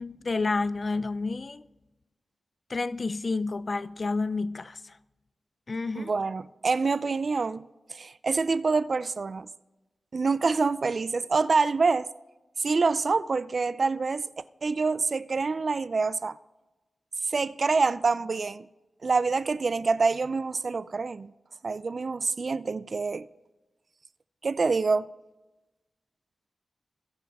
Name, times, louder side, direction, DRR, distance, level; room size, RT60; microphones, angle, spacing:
voice 1, 0.0-1.6 2.7-4.9 5.7-6.1, left 3 dB, 45° left, 0.4 m, -30 dB
voice 2, 6.0-9.5 10.1-12.1 12.6-16.4 17.3-18.7 19.0-21.3 21.6-23.3 24.4-25.1, right 4 dB, 50° right, 0.4 m, -26 dB
21.0 x 7.1 x 3.5 m
wide cardioid pair, 90°, 0 cm